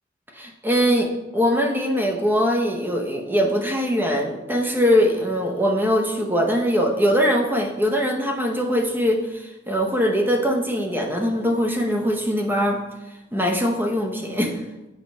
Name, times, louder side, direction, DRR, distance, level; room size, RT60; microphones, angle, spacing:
voice 1, 0.3-12.8 13.3-14.6, equal, 10° right, 2 dB, 0.8 m, -22 dB
7.4 x 4.4 x 5.3 m, 1.0 s
head